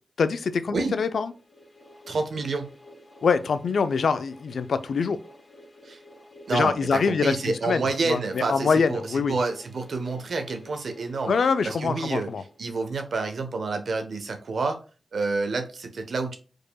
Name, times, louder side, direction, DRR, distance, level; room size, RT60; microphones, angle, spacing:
voice 1, 0.2-1.3 3.2-5.2 6.5-9.4 11.3-12.4, left 5 dB, 85° left, 0.4 m, -24 dB
sound 1, 1.2-13.0, left 1 dB, 45° left, 1.2 m, -50 dB
voice 2, 2.1-2.7 5.8-6.0 6.5-11.3 11.6-12.3 12.6-14.8 15.1-16.4, right 3 dB, 80° right, 1.0 m, -28 dB
4.7 x 4.7 x 2.3 m
cardioid pair, 45°, 0 cm